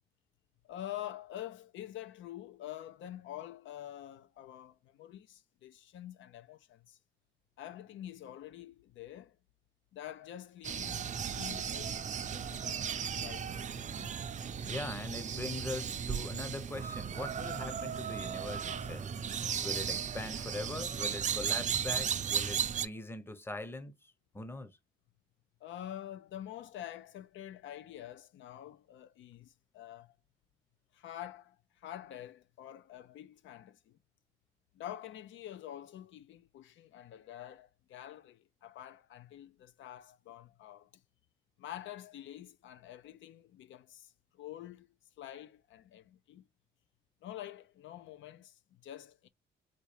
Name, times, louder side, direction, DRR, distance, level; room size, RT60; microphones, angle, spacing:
voice 1, 0.6-7.0 7.6-9.4 9.9-12.9 13.2-14.1 25.6-30.1 30.9-34.0 34.7-40.9 41.6-44.9 45.2-46.4 47.2-49.3, left 12 dB, 70° left, 0.5 m, -47 dB
sound 1, 10.6-22.9, right 7 dB, 40° right, 0.5 m, -36 dB
voice 2, 14.6-24.8, left 2 dB, 10° left, 0.7 m, -42 dB
4.1 x 2.4 x 3.2 m
cardioid pair, 90°, 20 cm